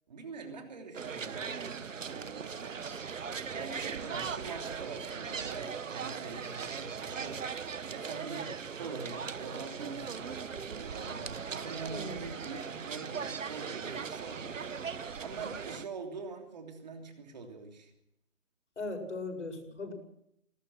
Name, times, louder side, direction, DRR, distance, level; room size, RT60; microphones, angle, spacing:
voice 1, 0.1-2.8 3.5-17.9, right 4 dB, 30° right, 4 dB, 3.2 m, -44 dB
sound 1, 0.9-15.9, right 6 dB, 70° right, 1.3 m, -39 dB
voice 2, 18.8-19.9, left 3 dB, 65° left, 4 dB, 7.6 m, -38 dB
20.5 x 18.5 x 7.9 m, 0.78 s
hypercardioid pair, 175°, 40 cm